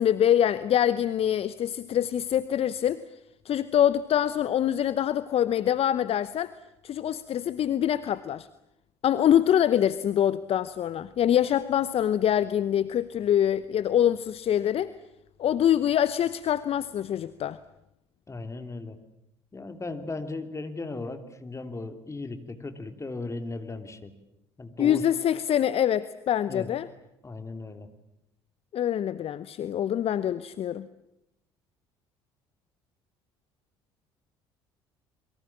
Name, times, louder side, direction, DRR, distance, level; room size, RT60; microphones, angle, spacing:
voice 1, 0.0-3.0 3.4-6.5 6.8-8.5 9.0-14.9 15.4-17.6 24.8-26.9 28.7-30.9, left 10 dB, 45° left, 15 dB, 0.9 m, -25 dB
voice 2, 18.3-19.0 19.5-24.1 24.6-25.0 26.5-26.7 27.2-27.9, left 3 dB, 20° left, 7 dB, 3.2 m, -36 dB
28.0 x 22.5 x 7.4 m, 0.85 s
figure-of-eight pair, 55°, 14 cm